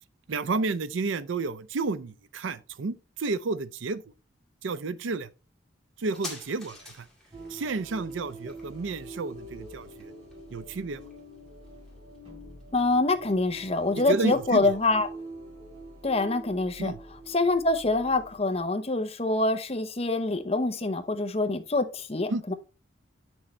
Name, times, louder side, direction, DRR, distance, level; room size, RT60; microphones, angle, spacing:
voice 1, 0.3-4.0 4.6-5.3 6.0-7.1 7.5-10.1 10.5-11.1 14.0-14.8 16.8-17.0 22.3-22.5, right 3 dB, 85° right, 0.5 m, -31 dB
sound 1, 6.0-13.1 13.4-13.5, left 2 dB, 5° left, 2.3 m, -48 dB
sound 2, 7.3-18.6, right 1 dB, 30° right, 3.9 m, -45 dB
voice 2, 12.7-15.1 16.0-16.9 17.3-22.5, left 2 dB, 30° left, 0.8 m, -25 dB
8.4 x 6.2 x 3.2 m
head